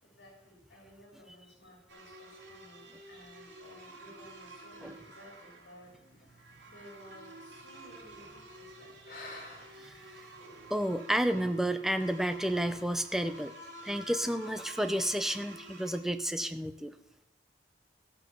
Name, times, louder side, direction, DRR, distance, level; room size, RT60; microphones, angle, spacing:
voice 1, 0.0-5.9 6.6-10.2 10.5-10.6, equal, 70° left, -1 dB, 3.6 m, -56 dB
sound 1, 1.9-16.0, right 2 dB, 85° right, 3.2 m, -50 dB
sound 2, 5.8-10.8, left 2 dB, 50° left, 2.5 m, -53 dB
voice 2, 10.7-13.5 13.8-16.9, right 1 dB, ahead, 9 dB, 0.6 m, -31 dB
15.5 x 6.1 x 7.0 m, 0.90 s
head